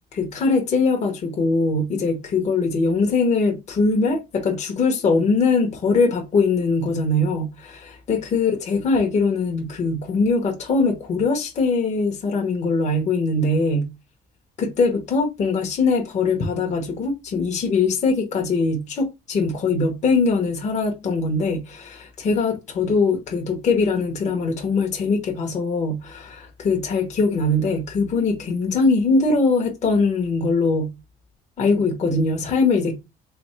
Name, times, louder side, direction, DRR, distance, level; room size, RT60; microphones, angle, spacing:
voice 1, 0.1-13.9 14.6-30.9 31.6-33.0, left 3 dB, 45° left, 1.1 m, -21 dB
3.7 x 3.5 x 3.2 m
cardioid pair, 110°, 17 cm